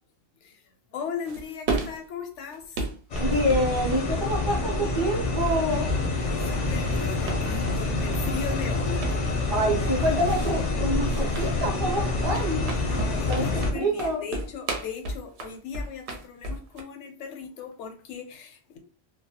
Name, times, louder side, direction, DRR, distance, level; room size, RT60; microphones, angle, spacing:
voice 1, 0.9-2.8 5.9-10.1 12.9-18.8, left 6 dB, 85° left, 0.9 m, -38 dB
sound 1, 1.2-2.0 2.5-4.5 4.8-5.3 5.6-6.6 6.8-7.8 8.1-8.8 9.0-9.2 10.0-10.6 11.0-11.6 12.0-16.8, right 2 dB, 75° right, 0.8 m, -33 dB
sound 2, 3.1-13.7, left 2 dB, 50° left, 0.5 m, -27 dB
voice 2, 3.2-5.9 9.5-12.7 13.3-14.2, equal, 30° right, 0.6 m, -27 dB
2.3 x 2.1 x 2.8 m
omnidirectional pair, 1.2 m